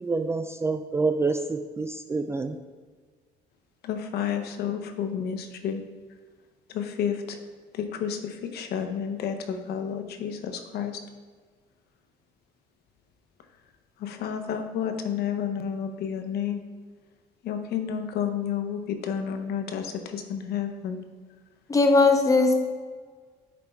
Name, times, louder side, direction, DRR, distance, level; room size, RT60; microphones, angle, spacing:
voice 1, 0.0-2.6, right 3 dB, 15° right, 7 dB, 0.3 m, -27 dB
voice 2, 3.8-5.8 6.7-7.4 7.7-11.0 14.0-16.6 17.4-21.0, left 8 dB, 70° left, 6 dB, 0.8 m, -31 dB
voice 3, 21.7-22.6, left 3 dB, 20° left, 5 dB, 0.9 m, -18 dB
9.4 x 3.4 x 4.4 m, 1.5 s
cardioid pair, 110°, 17 cm